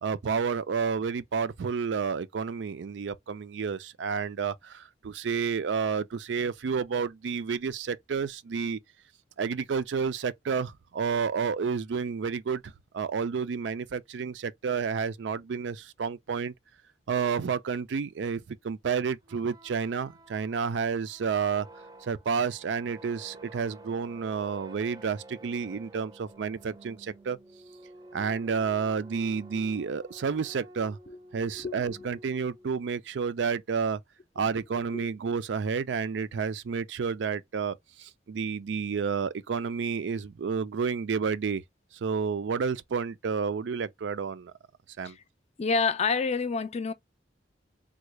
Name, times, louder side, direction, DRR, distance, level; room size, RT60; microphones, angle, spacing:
voice 1, 0.0-8.8 9.4-16.5 17.1-21.7 22.0-27.4 28.1-31.0 31.3-34.0 34.4-41.6 42.0-44.5 45.0-45.2, right 5 dB, 85° right, 0.4 m, -30 dB
sound 1, 19.2-33.0, right 1 dB, 20° right, 0.5 m, -51 dB
voice 2, 31.5-32.1 34.9-35.1 45.0-45.2 45.6-46.9, left 4 dB, 35° left, 0.4 m, -29 dB
3.6 x 2.2 x 3.1 m
head